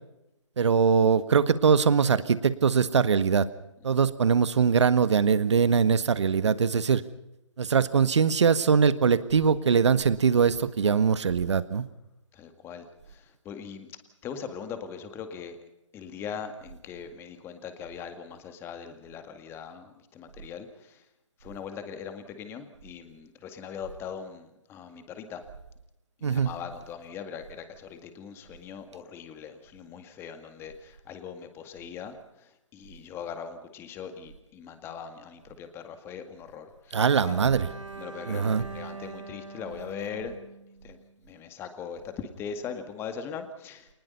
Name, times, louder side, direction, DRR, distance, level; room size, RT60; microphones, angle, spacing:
voice 1, 0.6-3.4 3.8-7.0 7.6-11.8 26.2-26.5 36.9-37.7 38.3-38.6, right 6 dB, 65° right, 13 dB, 1.6 m, -22 dB
voice 2, 12.3-13.9 14.2-15.6 15.9-21.0 21.4-25.4 26.2-32.2 32.7-37.4 38.0-40.4 40.8-41.0 41.3-43.9, left 7 dB, 15° left, 8 dB, 2.0 m, -40 dB
Bowed string instrument, 37.2-41.3, right 4 dB, 90° right, 3.6 m, -43 dB
26.5 x 20.0 x 5.5 m, 0.90 s
hypercardioid pair, 150°, 16 cm